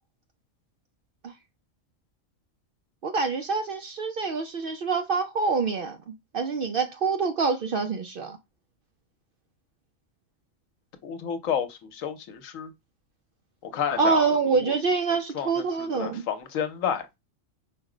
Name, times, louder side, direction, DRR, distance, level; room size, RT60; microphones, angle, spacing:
voice 1, 3.0-8.4 14.0-16.2, right 4 dB, 65° right, 0.5 m, -26 dB
voice 2, 11.0-12.7 13.7-14.7 15.3-17.0, left 8 dB, 80° left, 1.2 m, -31 dB
5.1 x 2.1 x 4.8 m
omnidirectional pair, 1.3 m